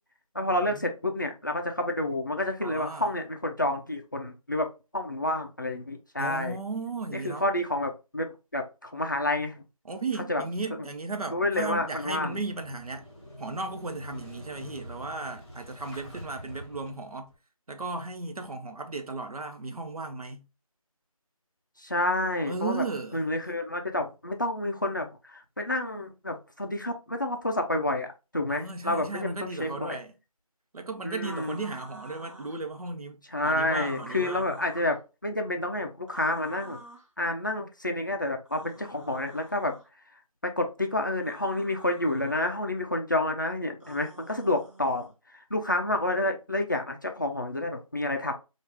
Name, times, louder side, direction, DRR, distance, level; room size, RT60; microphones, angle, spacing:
voice 1, 0.3-4.7 4.9-6.6 7.1-9.6 10.3-10.4 11.3-12.4 21.8-22.8 23.1-28.1 28.3-30.0 31.0-31.6 33.3-35.0 35.2-36.8 37.2-39.7 40.4-45.1 45.5-48.3, left 1 dB, 35° left, 0.4 m, -29 dB
voice 2, 2.6-3.1 6.2-7.4 9.8-13.1 13.4-17.3 17.7-20.5 22.5-23.2 28.5-30.1 30.7-34.4, right 3 dB, 80° right, 0.8 m, -35 dB
Motorcycle / Engine starting, 11.5-17.3, equal, 10° left, 0.9 m, -46 dB
sound 1, 31.2-32.6 33.8-35.0 36.1-37.1 38.5-39.9 41.2-42.4 43.8-45.1, right 1 dB, 55° right, 1.3 m, -48 dB
3.4 x 2.4 x 3.0 m
figure-of-eight pair, 170°, 19 cm